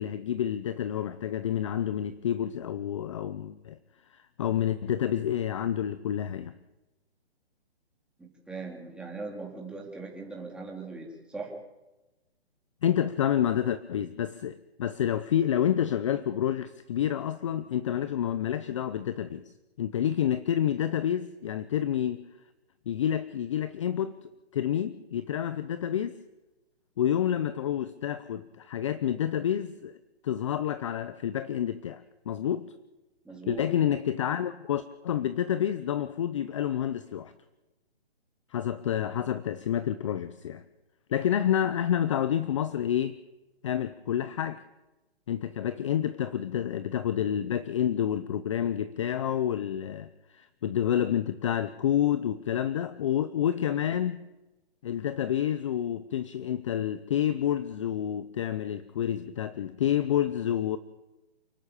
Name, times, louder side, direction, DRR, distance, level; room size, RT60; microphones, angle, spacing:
voice 1, 0.0-3.8 4.1-6.6 12.8-19.5 19.8-22.3 22.9-24.2 24.5-26.2 27.0-30.0 30.2-32.7 33.5-37.3 38.5-40.6 41.1-43.2 43.6-44.6 45.3-54.3 54.8-60.8, left 10 dB, 30° left, 14 dB, 0.6 m, -29 dB
voice 2, 8.2-11.5 33.2-33.6, right 3 dB, 5° right, -2 dB, 3.3 m, -40 dB
28.5 x 12.0 x 8.8 m, 1.1 s
hypercardioid pair, 155°, 32 cm